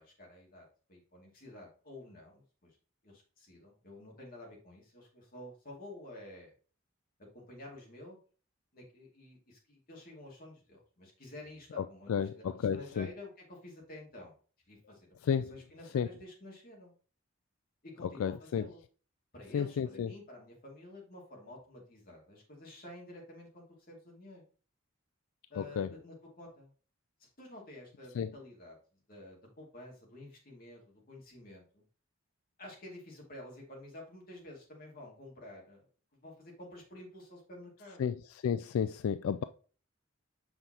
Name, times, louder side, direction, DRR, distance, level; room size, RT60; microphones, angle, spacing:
voice 1, 0.0-2.8 3.0-6.5 7.2-8.2 8.7-12.5 12.7-14.3 14.7-15.1 15.5-16.9 17.8-18.8 19.3-24.4 25.5-26.7 27.2-28.8 29.1-31.8 32.6-35.8 36.1-38.1, left 1 dB, 45° left, 2.5 m, -50 dB
voice 2, 11.8-13.1 15.2-15.5 15.9-16.1 18.0-18.7 19.5-20.1 25.6-25.9 28.1-28.3 38.0-39.4, left 7 dB, 85° left, 0.3 m, -32 dB
6.8 x 5.7 x 2.9 m
head